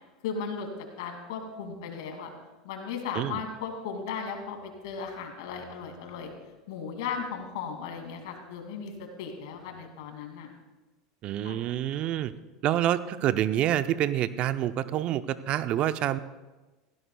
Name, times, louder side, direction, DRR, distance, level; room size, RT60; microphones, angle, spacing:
voice 1, 0.2-0.7 1.0-2.3 2.6-6.3 6.7-10.5 11.4-11.6, left 6 dB, 75° left, 4 dB, 2.4 m, -36 dB
voice 2, 11.2-12.3 12.6-16.2, right 12 dB, 50° right, 13 dB, 0.6 m, -27 dB
16.5 x 16.0 x 2.3 m, 1.1 s
hypercardioid pair, 90°, 2 cm